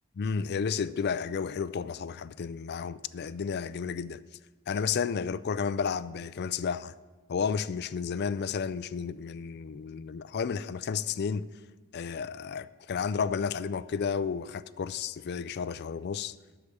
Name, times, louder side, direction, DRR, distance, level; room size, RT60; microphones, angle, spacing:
voice 1, 0.2-4.2 4.7-6.9 7.3-11.5 11.9-16.3, left 6 dB, 45° left, 0.3 m, -32 dB
13.0 x 4.9 x 8.5 m
head